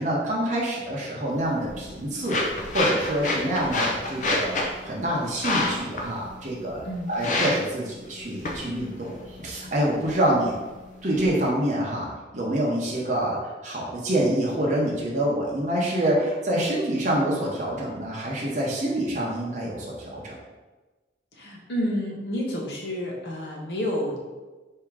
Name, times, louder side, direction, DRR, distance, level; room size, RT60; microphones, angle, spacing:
voice 1, 0.0-4.6 4.8-9.1 9.4-10.5 11.0-12.1 12.3-13.4 13.6-20.4, right 1 dB, 40° right, -4 dB, 0.8 m, -26 dB
sound 1, 1.3-11.3, left 2 dB, 45° left, 0.6 m, -30 dB
voice 2, 21.4-24.2, equal, 65° left, -1 dB, 0.9 m, -29 dB
3.6 x 2.8 x 4.7 m, 1.2 s
head